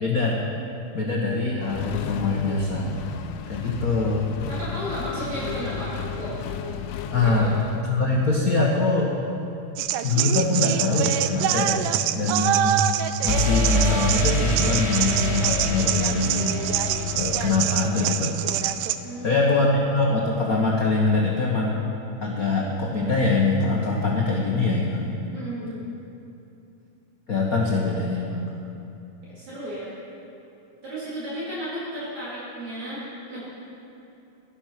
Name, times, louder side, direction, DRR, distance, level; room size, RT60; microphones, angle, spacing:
voice 1, 0.0-0.4 0.9-3.0 3.5-4.3 7.1-7.5 7.9-9.2 10.0-11.8 12.1-12.7 13.2-16.5 17.1-18.4 19.2-21.8 22.2-25.2 27.3-28.4, left 3 dB, 55° left, -3 dB, 0.9 m, -23 dB
Accelerating revving vroom, 1.6-7.8, left 8 dB, 75° left, 1.9 m, -34 dB
voice 2, 4.5-6.3 7.2-7.6 19.0-19.4 25.3-25.8 29.2-29.9 30.8-33.5, equal, 60° right, -10 dB, 5.0 m, -34 dB
sound 1, 5.1-7.2 13.3-19.0, left 2 dB, 15° left, 4.4 m, -28 dB
sound 2, 9.8-19.0, right 12 dB, 80° right, 2.0 m, -25 dB
16.5 x 12.5 x 5.9 m, 2.8 s
omnidirectional pair, 3.7 m